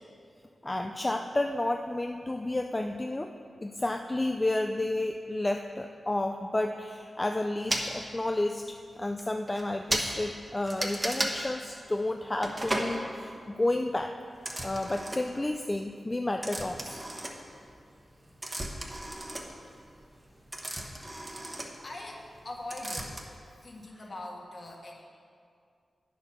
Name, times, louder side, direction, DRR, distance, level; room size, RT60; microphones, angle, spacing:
voice 1, 0.6-3.3 3.6-14.1 14.6-17.0, left 2 dB, 20° left, 4 dB, 0.4 m, -31 dB
sound 1, 7.7-7.9 8.7-8.8 9.2-9.3 9.5-9.6 9.9-10.1 10.7-11.4 12.4-12.9 14.4-15.4 16.4-17.8 18.1-22.4 22.7-23.2, right 1 dB, 20° right, 1.1 m, -34 dB
voice 2, 21.3-23.2 23.6-25.0, left 2 dB, 45° left, -1 dB, 1.7 m, -43 dB
9.5 x 7.1 x 6.0 m, 2.3 s
wide cardioid pair, 85°, 0 cm